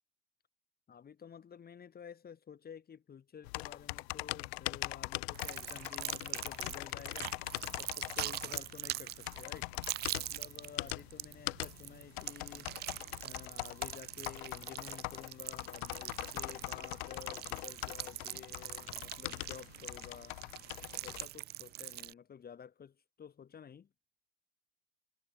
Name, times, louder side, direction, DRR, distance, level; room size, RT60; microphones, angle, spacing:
voice 1, 0.9-7.4 7.8-9.7 10.1-12.7 13.2-20.4 21.0-23.9, left 7 dB, 25° left, 3.0 m, -52 dB
sound 1, 3.4-21.3, left 24 dB, 65° left, 0.5 m, -42 dB
sound 2, 5.3-22.1, right 15 dB, 30° right, 0.4 m, -43 dB
hypercardioid pair, 90°, 34 cm